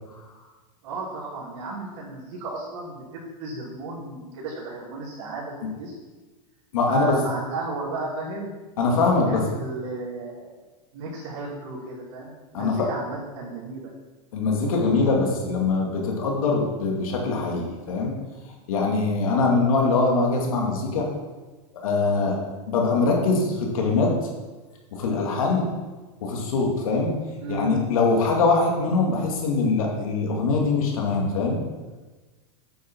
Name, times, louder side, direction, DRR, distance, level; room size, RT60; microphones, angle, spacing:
voice 1, 0.8-5.9 6.9-8.6 9.3-10.6 10.9-13.9 27.4-27.8, right 3 dB, 55° right, -8 dB, 3.4 m, -33 dB
voice 2, 6.7-7.1 8.8-9.4 12.5-12.8 14.3-18.1 18.7-21.1 21.8-22.4 22.7-24.1 24.9-25.7 26.2-27.1 27.5-31.6, left 3 dB, 85° left, 0 dB, 2.5 m, -22 dB
9.2 x 6.9 x 4.7 m, 1.3 s
supercardioid pair, 145°, 17 cm